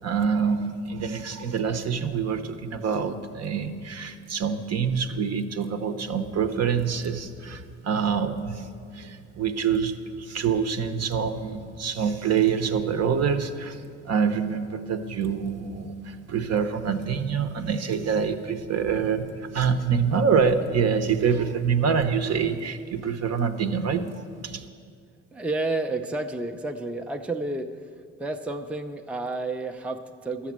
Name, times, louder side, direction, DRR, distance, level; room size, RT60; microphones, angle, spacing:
voice 1, 0.0-8.6 8.9-13.8 14.1-24.0 24.4-24.7, right 6 dB, 55° right, 8 dB, 0.9 m, -26 dB
voice 2, 25.3-27.9 28.2-30.5, right 2 dB, 5° right, 5 dB, 0.5 m, -31 dB
11.5 x 7.1 x 7.4 m, 2.2 s
cardioid pair, 90°, 30 cm